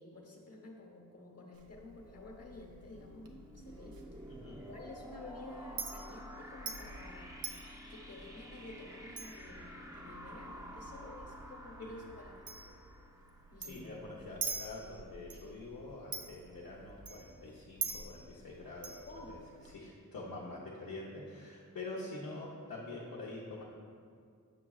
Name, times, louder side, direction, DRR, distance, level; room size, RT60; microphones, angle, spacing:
voice 1, 0.0-4.0 4.6-7.3 7.9-12.5 13.5-13.9 19.0-19.4, left 2 dB, 45° left, 0 dB, 1.2 m, -51 dB
Chink clink, 1.5-19.7, right 5 dB, 90° right, 0.6 m, -47 dB
sound 1, 2.7-14.1, equal, 10° right, 0.7 m, -51 dB
voice 2, 4.3-4.6 13.6-19.4 19.7-23.6, left 2 dB, 75° left, -7 dB, 0.8 m, -46 dB
7.6 x 5.7 x 2.3 m, 2.3 s
cardioid pair, 40°, 34 cm